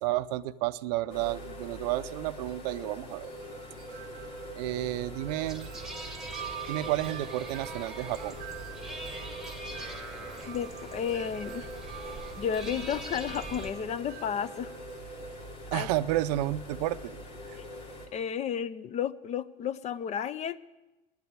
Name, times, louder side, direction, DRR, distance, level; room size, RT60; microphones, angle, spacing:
voice 1, 0.0-3.3 4.6-5.7 6.7-8.4 15.7-17.2, right 15 dB, 80° right, 14 dB, 0.6 m, -31 dB
sound 1, 1.1-18.1, equal, 80° left, 3.1 m, -43 dB
Wind chime, 3.1-16.5, right 12 dB, 45° right, 0.7 m, -47 dB
sound 2, 5.4-13.7, right 1 dB, ahead, 1.2 m, -44 dB
voice 2, 10.5-11.7 12.4-14.7 15.7-15.9 17.6-17.7 18.1-20.6, left 8 dB, 35° left, 17 dB, 0.5 m, -32 dB
10.5 x 8.2 x 9.5 m, 1.1 s
supercardioid pair, 120°, 21 cm